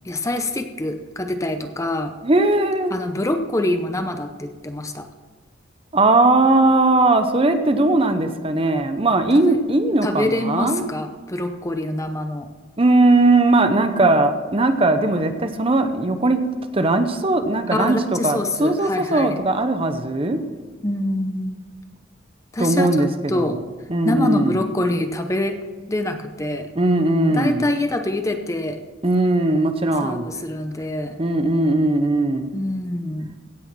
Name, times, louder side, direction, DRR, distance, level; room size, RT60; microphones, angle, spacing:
voice 1, 0.1-2.1 2.9-5.1 10.0-12.5 17.7-19.4 20.8-21.6 22.5-23.6 24.0-25.6 25.9-26.7 27.3-28.8 30.0-31.2 32.5-33.3, left 1 dB, 15° left, 6 dB, 0.7 m, -25 dB
voice 2, 2.2-3.0 5.9-10.9 12.8-16.4 16.7-20.4 22.6-23.6 23.9-24.6 26.7-27.7 29.0-30.3 31.2-32.5, right 2 dB, 30° right, 8 dB, 0.7 m, -19 dB
16.0 x 6.3 x 6.1 m, 1.3 s
head